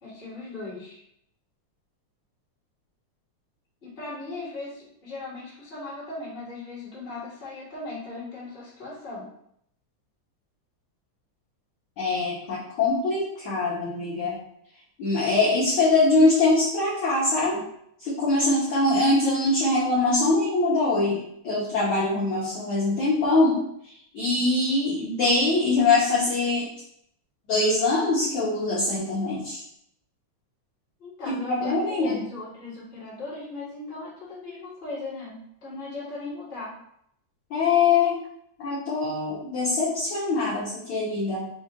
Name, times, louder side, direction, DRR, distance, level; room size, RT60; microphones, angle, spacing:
voice 1, 0.0-1.0 3.8-9.3 31.0-36.8, left 3 dB, 25° left, -9 dB, 1.3 m, -38 dB
voice 2, 12.0-14.4 15.0-17.6 18.0-21.2 21.4-23.6 24.1-26.7 27.5-29.6 31.3-32.2 37.5-38.2 38.6-41.5, left 3 dB, 65° left, -8 dB, 1.3 m, -23 dB
5.2 x 2.4 x 3.6 m, 0.72 s
omnidirectional pair, 3.6 m